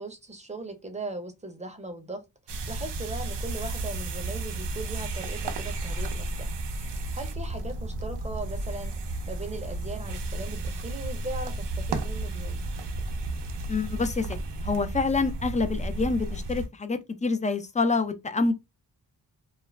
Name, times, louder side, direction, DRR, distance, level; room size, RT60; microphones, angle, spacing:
voice 1, 0.0-2.2 2.7-6.5 6.8-12.6, right 2 dB, 15° right, 0.7 m, -39 dB
sound 1, 2.5-16.7, right 2 dB, 80° right, 0.6 m, -33 dB
voice 2, 13.7-14.4 14.6-18.5, left 4 dB, 20° left, 0.4 m, -27 dB
2.4 x 2.0 x 3.2 m
cardioid pair, 75°, 40 cm